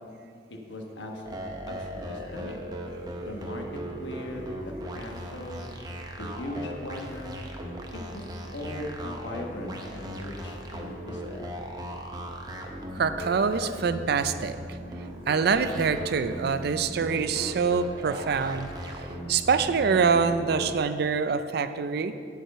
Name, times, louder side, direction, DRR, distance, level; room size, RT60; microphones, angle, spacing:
voice 1, 0.5-1.4 1.7-2.6 3.2-3.6 4.0-5.7 6.2-7.4 8.1-8.2 8.5-11.6, left 1 dB, 85° left, 2 dB, 1.2 m, -39 dB
sound 1, 1.2-20.8, right 1 dB, 25° right, 0.8 m, -38 dB
voice 2, 13.0-14.6 15.3-18.7 19.3-22.1, right 5 dB, 60° right, 11 dB, 0.4 m, -25 dB
8.7 x 4.8 x 6.7 m, 2.3 s
head